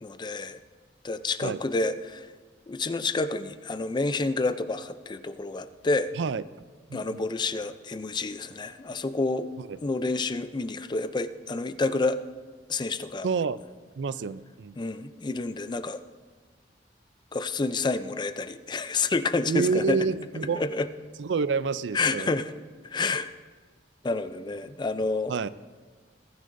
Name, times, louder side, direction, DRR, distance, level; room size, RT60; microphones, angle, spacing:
voice 1, 0.0-0.6 1.0-2.3 2.7-6.1 6.9-9.5 9.8-12.2 12.7-13.3 14.8-16.0 17.3-20.0 20.5-20.9 21.9-22.5 22.8-23.3 24.0-25.3, left 3 dB, 25° left, 12 dB, 0.4 m, -29 dB
voice 2, 6.2-6.6 6.9-7.2 9.6-9.8 13.2-13.6 14.0-14.8 19.5-20.6 21.2-22.3 25.3-25.5, right 5 dB, 90° right, 16 dB, 0.4 m, -28 dB
21.5 x 9.8 x 2.6 m, 1.4 s
head